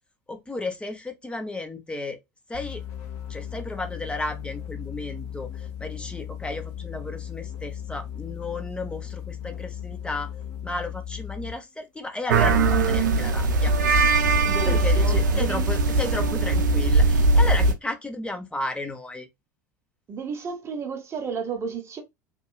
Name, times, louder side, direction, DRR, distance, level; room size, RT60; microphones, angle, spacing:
voice 1, 0.3-2.2 2.5-2.8 3.3-10.3 10.6-13.7 14.6-19.3, left 2 dB, 10° left, 0.6 m, -33 dB
sound 1, 2.5-11.7, left 9 dB, 55° left, 0.7 m, -36 dB
sound 2, 12.3-17.7, right 2 dB, 70° right, 0.4 m, -20 dB
voice 2, 14.4-15.6 20.1-22.0, right 6 dB, 25° right, 0.8 m, -32 dB
3.0 x 2.2 x 2.2 m
figure-of-eight pair, 75°, 10 cm